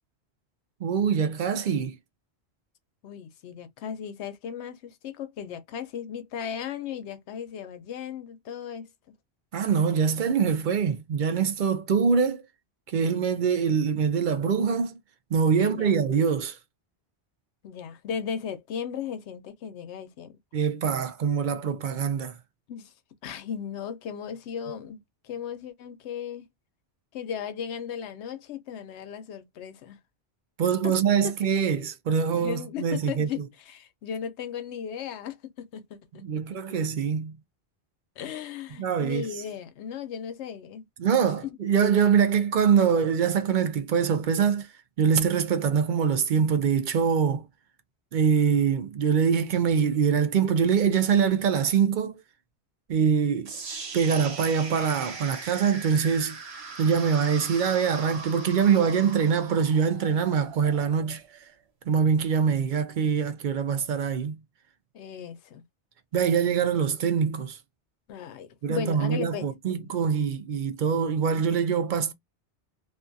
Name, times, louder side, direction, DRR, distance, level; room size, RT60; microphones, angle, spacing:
voice 1, 0.8-2.0 9.5-12.4 12.9-15.0 15.3-16.6 20.5-22.4 30.6-33.3 36.2-37.4 38.8-39.3 41.0-44.7 45.0-47.4 48.1-52.2 52.9-53.5 53.9-56.4 56.8-61.2 61.9-64.4 66.1-67.6 68.6-72.1, right 6 dB, 55° right, 0.6 m, -24 dB
voice 2, 3.0-8.9 15.6-16.0 17.6-20.3 22.7-22.9 23.2-26.5 27.1-30.0 30.8-30.9 32.3-36.0 36.3-36.4 38.2-40.8 41.4-41.5 64.9-65.6 68.1-69.8, left 8 dB, 85° left, 0.9 m, -36 dB
sound 1, 53.4-61.5, right 4 dB, 75° right, 1.0 m, -40 dB
2.5 x 2.3 x 2.6 m
omnidirectional pair, 1.1 m